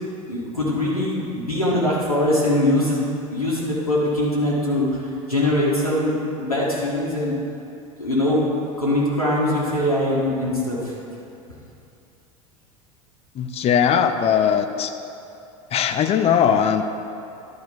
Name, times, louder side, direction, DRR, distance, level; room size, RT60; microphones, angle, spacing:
voice 1, 0.3-3.0 3.3-7.3 8.0-8.5 8.8-10.9, left 1 dB, 90° left, -7 dB, 1.7 m, -22 dB
voice 2, 13.4-14.9 15.7-16.8, left 8 dB, 35° left, 8 dB, 0.7 m, -19 dB
12.0 x 4.9 x 6.8 m, 2.7 s
figure-of-eight pair, 75°, 18 cm